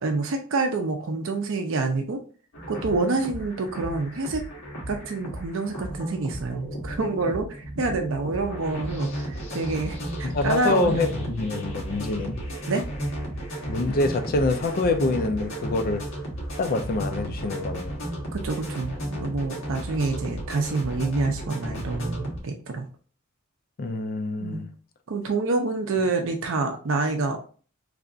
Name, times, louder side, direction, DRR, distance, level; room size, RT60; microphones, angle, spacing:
voice 1, 0.0-2.2 2.7-4.4 4.9-11.0 11.9-12.0 12.7-12.8 18.3-22.9 24.4-24.6 25.1-27.5, right 3 dB, 65° right, 0.5 m, -27 dB
sound 1, 2.5-22.4, right 1 dB, 65° left, 1.3 m, -34 dB
voice 2, 10.2-12.4 13.7-16.0 16.6-18.0 23.8-24.7, left 2 dB, 45° left, 0.4 m, -26 dB
3.3 x 2.4 x 3.8 m
head